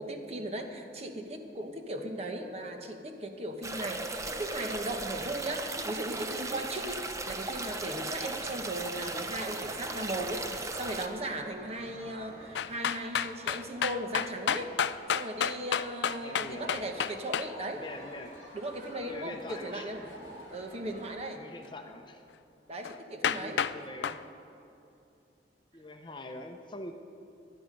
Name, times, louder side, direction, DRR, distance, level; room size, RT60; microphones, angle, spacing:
voice 1, 0.0-14.7 15.1-17.8 18.5-20.1 20.5-21.4 22.7-23.6, right 1 dB, 35° right, 4 dB, 1.2 m, -37 dB
sound 1, 3.6-11.1, right 2 dB, 20° right, 0.7 m, -37 dB
sound 2, 7.4-21.1, equal, 55° right, 3.6 m, -52 dB
sound 3, 12.6-17.5 22.9-23.0 23.2-23.8 24.0-24.2, left 8 dB, 85° left, 0.4 m, -30 dB
voice 2, 16.2-16.9 17.7-18.3 19.1-19.9 21.4-22.2 23.2-24.2 25.7-26.9, left 2 dB, 25° left, 5 dB, 0.8 m, -44 dB
19.5 x 11.0 x 5.3 m, 2.7 s
head